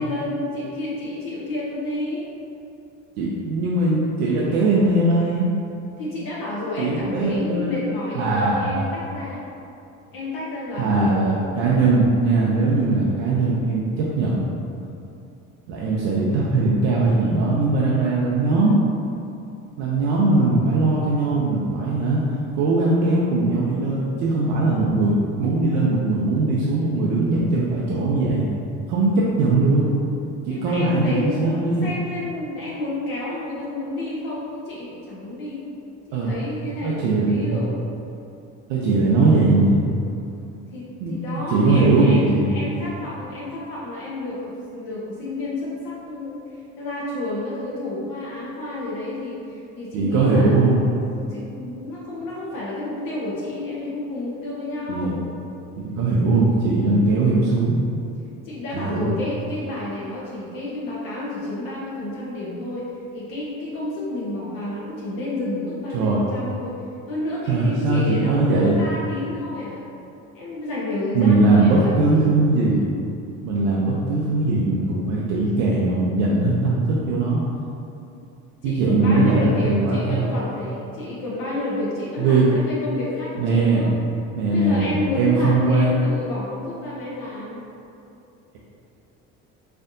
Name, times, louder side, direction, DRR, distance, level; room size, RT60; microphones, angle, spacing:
voice 1, 0.0-2.3 6.0-9.4 10.1-11.4 12.9-13.0 30.5-35.7 36.2-37.9 40.7-46.5 46.8-55.2 58.4-62.9 63.1-66.8 67.1-69.9 70.3-72.3 78.6-83.9 84.4-87.6, left 2 dB, 60° left, -7 dB, 0.8 m, -30 dB
voice 2, 3.2-5.5 6.8-7.7 8.1-8.9 10.8-14.4 15.7-18.8 19.8-22.2 22.5-28.5 28.9-29.8 30.4-31.9 36.1-36.4 36.8-37.6 38.7-39.8 41.0-41.2 41.5-42.8 49.9-50.8 54.9-55.1 55.8-57.8 58.7-59.1 65.9-66.2 67.5-68.8 71.1-72.9 73.4-77.4 78.6-80.3 82.2-82.5 83.4-83.9 84.3-86.0, right 2 dB, 80° right, -5 dB, 0.6 m, -20 dB
4.2 x 2.6 x 2.6 m, 2.7 s
hypercardioid pair, 70°, 38 cm